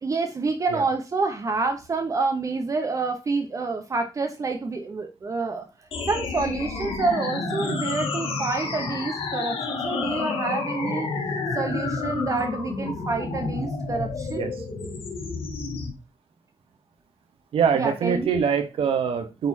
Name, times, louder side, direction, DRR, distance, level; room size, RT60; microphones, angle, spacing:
voice 1, 0.0-11.2 11.5-14.5 17.7-18.4, right 3 dB, 35° right, 0.9 m, -28 dB
sound 1, 5.9-15.9, left 4 dB, 85° left, 2.1 m, -30 dB
voice 2, 17.5-19.5, right 7 dB, 85° right, 1.0 m, -24 dB
8.8 x 4.2 x 2.8 m
wide cardioid pair, 130°, 9 cm